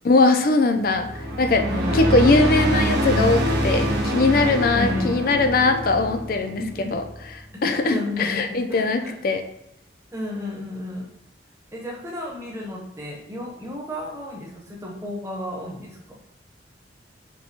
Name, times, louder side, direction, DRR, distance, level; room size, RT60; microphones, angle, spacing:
voice 1, 0.0-1.6 1.9-6.6 6.9-7.0 7.6-9.4, left 3 dB, 50° left, 6 dB, 0.4 m, -20 dB
sound 1, 0.8-7.5, equal, 65° right, 0.7 m, -25 dB
voice 2, 1.7-2.1 4.7-5.1 6.6-6.9 7.9-9.1 10.1-11.1 11.7-16.1, left 1 dB, 15° right, -3 dB, 0.9 m, -32 dB
5.4 x 2.2 x 2.8 m, 0.84 s
head